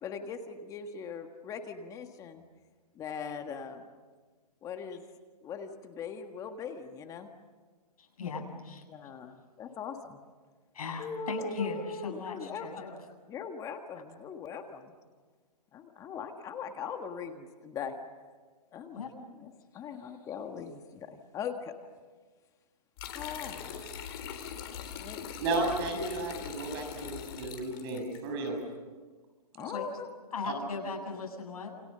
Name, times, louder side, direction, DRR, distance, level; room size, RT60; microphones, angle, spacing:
voice 1, 0.0-2.4 2.9-3.8 4.6-5.0 5.4-7.3 8.9-10.2 11.0-13.0 13.3-14.9 15.7-18.0 18.7-19.1 19.4-21.7 23.1-25.2 29.5-30.1, left 6 dB, 15° left, 6 dB, 1.5 m, -40 dB
voice 2, 8.0-8.8 10.7-13.0 18.9-19.1 29.7-29.9 30.3-31.8, left 4 dB, 65° left, 2 dB, 7.6 m, -38 dB
sound 1, 23.0-28.2, left 8 dB, 40° left, 3.8 m, -42 dB
voice 3, 25.4-28.5 29.6-29.7, right 2 dB, 35° right, 4 dB, 6.7 m, -33 dB
29.5 x 28.0 x 6.7 m, 1.4 s
hypercardioid pair, 155°, 21 cm